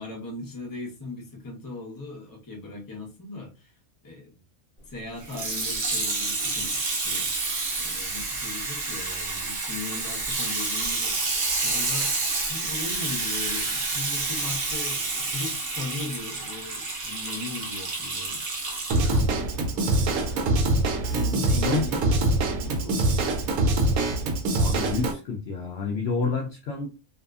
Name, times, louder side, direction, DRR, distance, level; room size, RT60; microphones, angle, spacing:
voice 1, 0.0-3.7 4.0-4.4 4.9-7.3 7.8-12.2 12.5-18.4 19.0-20.7 21.1-23.4, left 3 dB, 20° left, -2 dB, 0.6 m, -39 dB
Water tap faucet / Sink (filling or washing), 5.2-19.2 19.9-20.0, right 3 dB, 45° right, 0.8 m, -29 dB
Drum kit / Drum, 18.9-25.1, right 2 dB, 80° right, 1.0 m, -24 dB
voice 2, 24.5-26.9, left 4 dB, 65° left, 0 dB, 0.6 m, -28 dB
2.7 x 2.4 x 2.3 m, 0.30 s
omnidirectional pair, 1.5 m